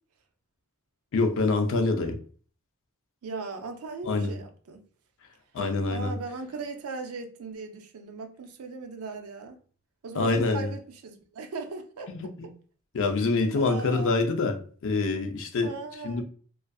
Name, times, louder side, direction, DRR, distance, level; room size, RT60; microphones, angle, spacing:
voice 1, 1.1-2.2 4.0-4.3 5.5-6.1 10.1-10.7 12.1-12.5 12.9-15.7 16.0-16.2, left 3 dB, 60° left, 0.5 m, -26 dB
voice 2, 3.2-4.8 5.9-9.6 10.0-12.1 13.5-14.2 15.6-16.2, right 4 dB, 75° right, 0.5 m, -38 dB
2.5 x 2.4 x 2.2 m
head